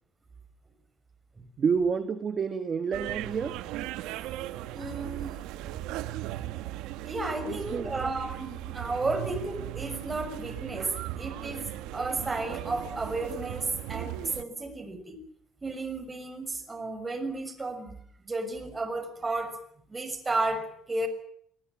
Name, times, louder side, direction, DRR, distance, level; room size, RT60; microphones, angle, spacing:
voice 1, 1.6-3.6 7.4-7.9, right 6 dB, 35° right, 1.7 m, -29 dB
sound 1, 2.9-14.4, right 14 dB, 85° right, 1.5 m, -37 dB
voice 2, 4.7-5.4 7.0-15.2 15.6-18.0 18.2-19.6 19.9-21.1, right 2 dB, 20° right, 6.4 m, -33 dB
27.0 x 21.0 x 7.5 m
cardioid pair, 115°, 0 cm